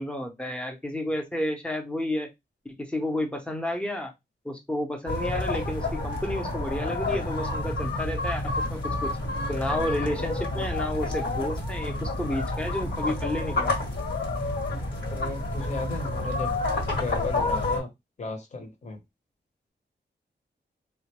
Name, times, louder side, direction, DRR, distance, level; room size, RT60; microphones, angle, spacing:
voice 1, 0.0-2.3 2.6-4.1 4.4-9.1 9.5-13.8, left 1 dB, 5° left, 3 dB, 0.6 m, -31 dB
sound 1, 5.1-17.8, left 2 dB, 70° left, 1.3 m, -29 dB
voice 2, 15.1-16.6 17.0-17.9 18.2-19.0, left 3 dB, 40° left, 4 dB, 0.8 m, -34 dB
3.7 x 2.2 x 2.9 m, 0.20 s
wide cardioid pair, 175°, 19 cm